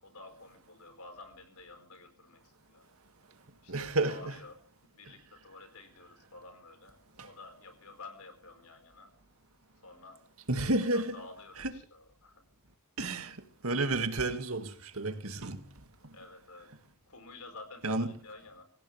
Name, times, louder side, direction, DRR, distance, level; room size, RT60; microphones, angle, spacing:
voice 1, 0.0-2.8 3.6-4.6 4.8-9.1 9.8-10.2 10.8-12.4 16.1-16.7 17.1-18.6, left 3 dB, 85° left, 4.6 m, -51 dB
voice 2, 3.7-4.4 7.2-7.3 10.5-11.2 11.6-11.7 13.0-13.4 13.6-15.6 16.0-16.2 17.8-18.1, right 2 dB, 70° right, 2.2 m, -31 dB
26.0 x 16.5 x 3.4 m
head